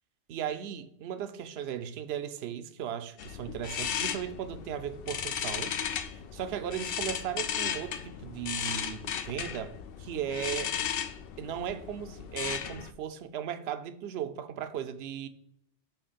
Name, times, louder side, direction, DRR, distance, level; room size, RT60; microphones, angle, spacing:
voice 1, 0.3-5.7 6.3-10.7 11.4-15.3, right 9 dB, 65° right, 0.8 m, -36 dB
sound 1, 3.2-12.9, left 8 dB, 65° left, 0.7 m, -35 dB
7.0 x 3.1 x 5.0 m
omnidirectional pair, 1.2 m